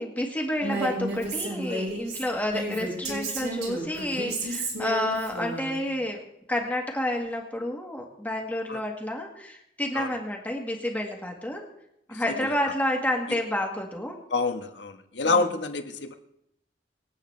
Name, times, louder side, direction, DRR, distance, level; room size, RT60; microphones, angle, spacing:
voice 1, 0.0-6.2 6.5-11.7 12.1-14.2 15.2-15.3, left 1 dB, 10° left, 1 dB, 1.6 m, -30 dB
Female speech woman speaking, 0.6-5.7, right 2 dB, 65° right, 4.5 m, -32 dB
voice 2, 12.1-12.7 14.3-16.1, left 3 dB, 90° left, 6 dB, 1.3 m, -28 dB
25.5 x 8.8 x 3.3 m, 0.79 s
head